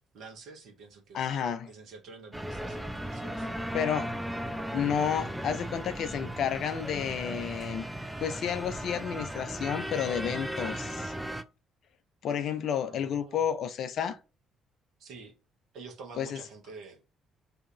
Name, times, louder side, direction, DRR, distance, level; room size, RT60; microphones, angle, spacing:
voice 1, 0.1-3.7 12.9-13.5 15.0-15.3 15.7-17.0, right 4 dB, 55° right, 1.0 m, -48 dB
voice 2, 1.1-1.7 3.7-4.1 4.7-7.9 8.2-11.1 12.2-14.2 16.2-16.4, left 8 dB, 55° left, 0.5 m, -31 dB
sound 1, 2.3-11.4, right 1 dB, 5° right, 0.4 m, -36 dB
2.8 x 2.5 x 4.2 m
figure-of-eight pair, 45°, 0 cm